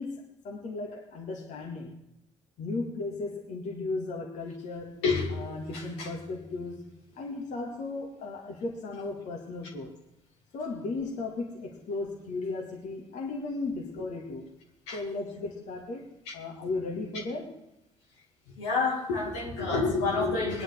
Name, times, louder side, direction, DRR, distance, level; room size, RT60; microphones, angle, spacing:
voice 1, 0.0-1.9 2.6-5.0 5.3-9.9 10.5-14.4 14.9-17.6, left 3 dB, 60° left, 1 dB, 1.8 m, -36 dB
voice 2, 5.0-6.2 14.9-15.0 16.3-16.4 18.6-20.6, left 4 dB, 75° left, -1 dB, 2.2 m, -29 dB
21.0 x 9.9 x 3.4 m, 0.82 s
figure-of-eight pair, 45°, 14 cm